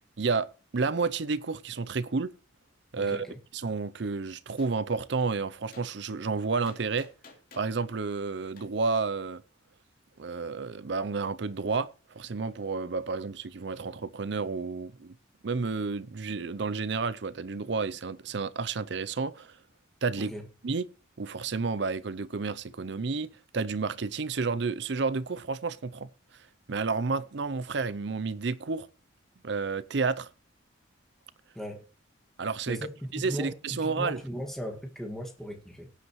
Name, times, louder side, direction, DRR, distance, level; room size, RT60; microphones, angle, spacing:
voice 1, 0.2-2.3 2.9-3.3 3.6-7.1 7.5-9.4 10.2-15.2 15.4-19.6 20.0-20.3 20.6-20.9 21.2-26.1 26.7-28.9 29.4-30.3 32.4-32.8 33.2-34.2, right 4 dB, 60° right, 0.6 m, -31 dB
voice 2, 3.0-3.4 20.2-20.4 31.5-31.9 32.7-35.9, equal, ahead, 2.0 m, -38 dB
Gunshot gunfire, 4.6-4.8 5.7-5.9 6.7-7.7 8.6-8.7, left 4 dB, 45° left, 3.0 m, -52 dB
17.5 x 8.0 x 3.1 m
head